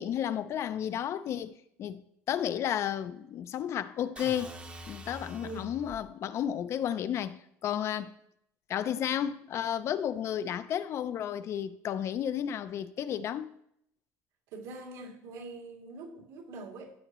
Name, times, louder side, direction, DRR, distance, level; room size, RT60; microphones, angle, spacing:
voice 1, 0.0-2.0 2.3-4.5 4.9-8.1 8.7-13.6, left 10 dB, 40° left, 0.4 m, -32 dB
sound 1, 4.2-6.1, right 1 dB, 20° right, 0.8 m, -45 dB
voice 2, 5.4-5.7 14.5-16.9, right 2 dB, 80° right, 2.7 m, -43 dB
13.5 x 7.7 x 3.0 m
cardioid pair, 150°, 7 cm